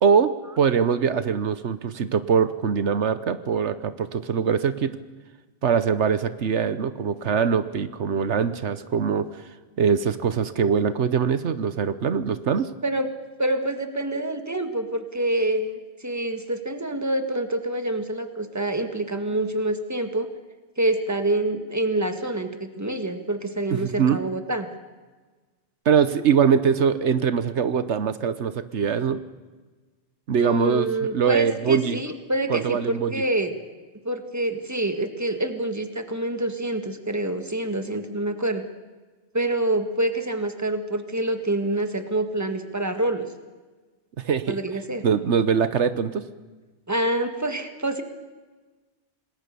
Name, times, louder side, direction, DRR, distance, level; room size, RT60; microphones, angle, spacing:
voice 1, 0.0-5.0 5.6-12.7 23.7-24.2 25.8-29.2 30.3-32.0 32.5-33.2 44.2-44.6 45.0-46.2, right 6 dB, 80° right, 13 dB, 1.3 m, -23 dB
voice 2, 13.4-20.3 20.8-24.7 30.4-33.5 34.1-38.7 39.3-43.3 44.5-45.0 46.9-48.0, right 1 dB, 15° right, 7 dB, 1.8 m, -26 dB
27.5 x 20.0 x 6.9 m, 1.3 s
omnidirectional pair, 1.2 m